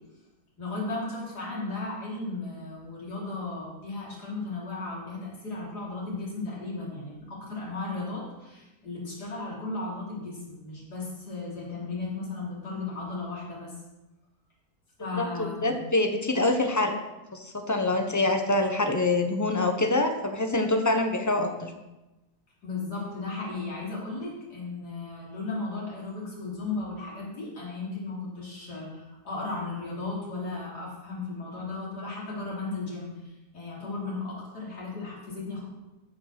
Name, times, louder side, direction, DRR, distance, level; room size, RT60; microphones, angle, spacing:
voice 1, 0.6-13.7 15.0-15.8 22.6-35.6, left 3 dB, 90° left, -5 dB, 3.9 m, -35 dB
voice 2, 15.2-16.9 17.3-21.7, left 2 dB, 15° left, 5 dB, 0.9 m, -25 dB
14.0 x 5.4 x 6.0 m, 1.0 s
omnidirectional pair, 1.7 m